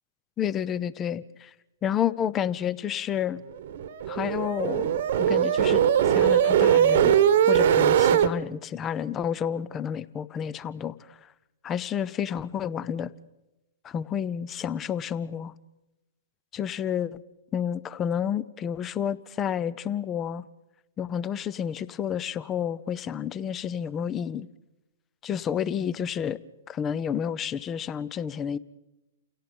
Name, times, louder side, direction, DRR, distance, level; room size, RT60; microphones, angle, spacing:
voice 1, 0.4-1.5 1.8-3.4 4.1-5.8 6.1-7.2 7.5-11.2 11.6-13.1 13.8-15.5 16.5-17.2 17.5-20.4 21.0-24.5 25.2-26.4 26.7-28.6, left 8 dB, 25° left, 20 dB, 0.7 m, -30 dB
sound 1, 3.6-8.3, right 9 dB, 55° right, 1.2 m, -21 dB
29.0 x 17.0 x 5.3 m, 0.97 s
figure-of-eight pair, 115°, 0 cm